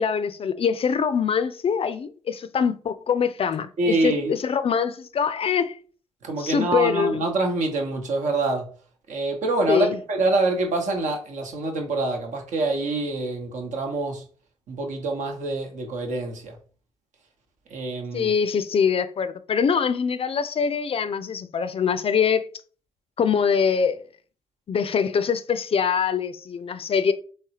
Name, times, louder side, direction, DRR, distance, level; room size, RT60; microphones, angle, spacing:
voice 1, 0.0-5.8 6.4-7.2 9.7-10.0 18.1-22.4 23.2-24.0 24.7-27.1, left 6 dB, 40° left, 0.4 m, -23 dB
voice 2, 3.8-4.3 6.2-8.7 9.1-14.2 14.7-16.6 17.7-18.3, right 2 dB, 60° right, 0.9 m, -25 dB
3.3 x 3.2 x 2.8 m
hypercardioid pair, 40°, 14 cm